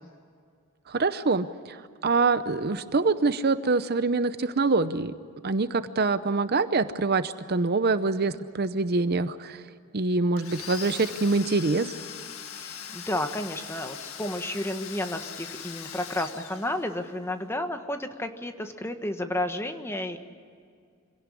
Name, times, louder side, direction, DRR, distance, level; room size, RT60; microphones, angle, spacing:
voice 1, 0.9-5.1 5.4-9.6 9.9-12.0, right 3 dB, 50° right, 12 dB, 0.7 m, -25 dB
Domestic sounds home sounds, 10.4-17.2, left 8 dB, 80° left, 1.8 m, -41 dB
voice 2, 12.6-20.2, left 1 dB, 10° left, 7 dB, 1.4 m, -32 dB
25.5 x 17.5 x 9.9 m, 2.2 s
head